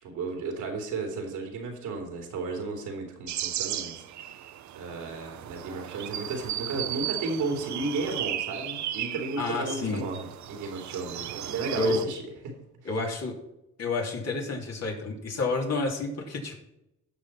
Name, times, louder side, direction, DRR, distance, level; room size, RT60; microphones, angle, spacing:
voice 1, 0.0-4.0 4.7-12.5, right 3 dB, 90° right, 2 dB, 3.0 m, -33 dB
sound 1, 3.3-12.0, right 11 dB, 70° right, 0.8 m, -35 dB
voice 2, 9.4-10.0 11.7-12.1 12.8-13.4 13.8-16.6, left 3 dB, 55° left, -1 dB, 3.2 m, -29 dB
16.0 x 6.2 x 4.3 m, 0.87 s
cardioid pair, 90°, 30 cm